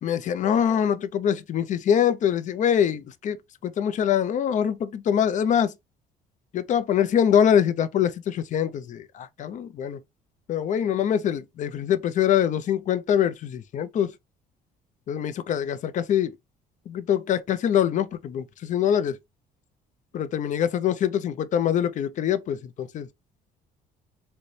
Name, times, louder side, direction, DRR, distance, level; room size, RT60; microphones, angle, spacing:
voice 1, 0.0-3.4 3.6-5.7 6.5-10.0 10.5-14.1 15.1-16.3 16.9-19.2 20.1-23.1, left 9 dB, 45° left, 0.5 m, -24 dB
3.9 x 2.2 x 3.1 m
cardioid pair, 110°, 17 cm